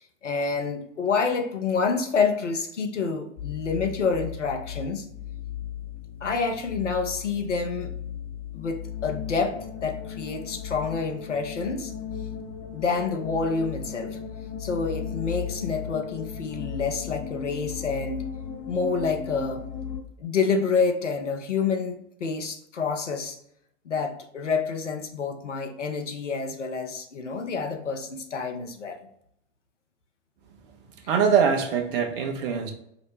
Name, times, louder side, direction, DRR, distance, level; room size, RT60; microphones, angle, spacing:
voice 1, 0.2-5.1 6.2-7.9 8.5-11.9 12.7-14.2 14.6-18.2 18.7-19.6 20.2-23.4 23.8-29.1, left 5 dB, 75° left, 4 dB, 0.8 m, -28 dB
sound 1, 3.4-20.0, left 8 dB, 30° left, 0.5 m, -36 dB
voice 2, 31.1-32.7, right 6 dB, 50° right, 4 dB, 0.9 m, -23 dB
5.0 x 2.1 x 4.7 m, 0.75 s
figure-of-eight pair, 90°, 36 cm